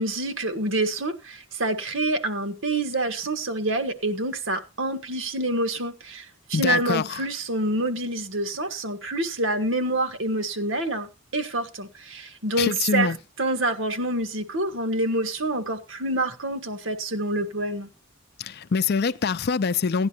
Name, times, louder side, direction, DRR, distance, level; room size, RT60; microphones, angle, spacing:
voice 1, 0.0-11.1 11.3-13.1 13.4-17.9, right 1 dB, 70° right, 1.5 m, -27 dB
voice 2, 6.5-7.2 12.6-13.2 18.4-20.1, left 5 dB, 55° left, 0.5 m, -24 dB
16.5 x 10.5 x 2.9 m
head